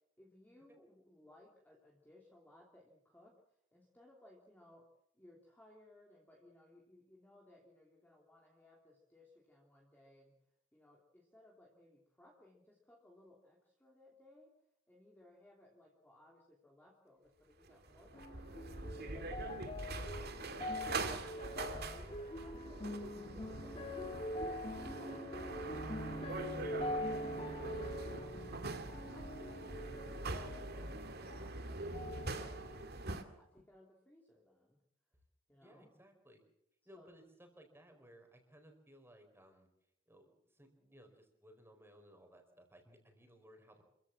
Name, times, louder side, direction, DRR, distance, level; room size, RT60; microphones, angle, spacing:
voice 1, 0.2-4.9 5.1-10.3 10.7-14.5 14.9-20.2 20.5-24.0 24.2-29.7 30.1-34.8 35.5-35.9 36.9-37.1, left 1 dB, 10° left, -1 dB, 2.8 m, -63 dB
sound 1, 17.7-33.2, right 2 dB, 50° right, 2.1 m, -44 dB
sound 2, 18.1-31.6 31.9-32.9 33.6-33.7, left 1 dB, 25° left, 1.8 m, -44 dB
voice 2, 35.6-36.4 36.8-39.7 40.1-43.8, equal, 10° right, 5 dB, 4.3 m, -61 dB
27.0 x 15.0 x 7.3 m, 0.77 s
head